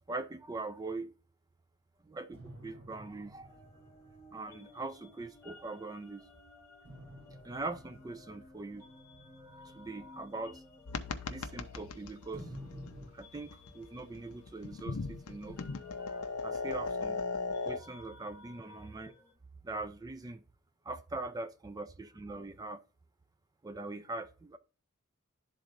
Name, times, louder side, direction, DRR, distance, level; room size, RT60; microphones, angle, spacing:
voice 1, 0.1-1.1 2.0-3.6 4.3-6.2 7.4-10.6 11.3-12.5 13.1-17.2 17.6-19.1 19.6-20.4 20.8-22.8 23.6-24.6, right 2 dB, 15° right, 0.4 m, -42 dB
sound 1, 2.3-6.0 6.8-11.9 12.3-13.1, equal, 85° right, 3.3 m, -52 dB
sound 2, 3.4-19.3, left 2 dB, 10° left, 1.1 m, -59 dB
sound 3, 10.9-17.8, left 4 dB, 80° left, 0.6 m, -39 dB
11.5 x 3.9 x 2.5 m
head